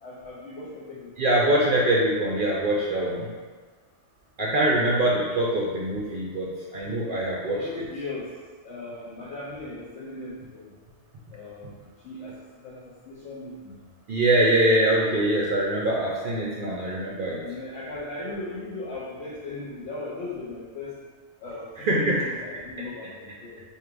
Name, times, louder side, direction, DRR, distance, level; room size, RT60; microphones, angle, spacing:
voice 1, 0.0-1.1 7.3-8.3 8.6-10.8 11.3-13.9 17.2-20.9 21.4-23.6, left 2 dB, 80° left, -6 dB, 0.9 m, -38 dB
voice 2, 1.2-3.3 4.4-7.6 14.1-17.4 21.8-22.2, right 1 dB, 60° right, -4 dB, 0.6 m, -23 dB
4.6 x 2.8 x 2.4 m, 1.4 s
omnidirectional pair, 1.2 m